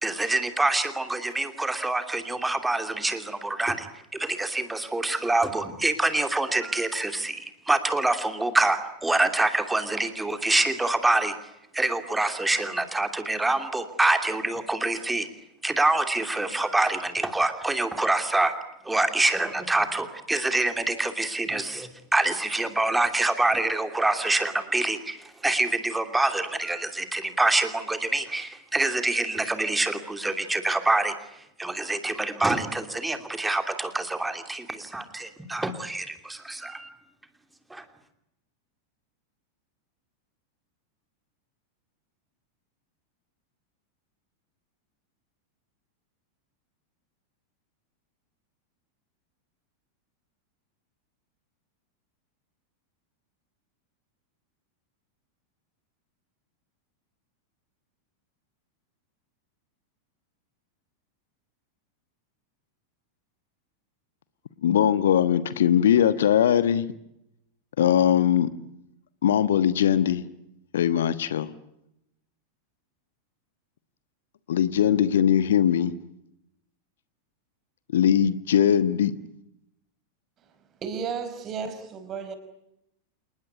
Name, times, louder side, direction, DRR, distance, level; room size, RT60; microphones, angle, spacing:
voice 1, 0.0-11.4 11.7-15.3 15.6-18.5 18.8-36.9 37.7-37.8, right 2 dB, 5° right, 7 dB, 2.9 m, -26 dB
voice 2, 64.6-66.9 67.8-68.5 69.2-70.3 70.7-71.5 74.5-75.9 77.9-79.1, left 9 dB, 60° left, 15 dB, 1.2 m, -21 dB
voice 3, 80.8-82.3, right 6 dB, 30° right, 10 dB, 5.0 m, -33 dB
28.0 x 20.0 x 9.5 m, 0.84 s
figure-of-eight pair, 90°, 0 cm